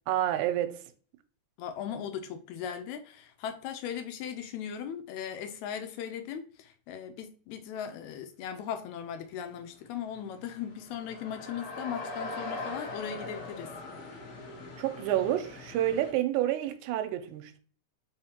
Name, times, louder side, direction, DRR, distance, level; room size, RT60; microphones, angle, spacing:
voice 1, 0.1-0.8 14.8-17.6, right 12 dB, 85° right, 2.0 m, -29 dB
voice 2, 1.6-13.7, left 8 dB, 80° left, 1.9 m, -38 dB
sound 1, 9.5-9.6 9.9-16.1, left 2 dB, 60° left, 1.6 m, -41 dB
4.6 x 3.5 x 2.8 m
omnidirectional pair, 3.5 m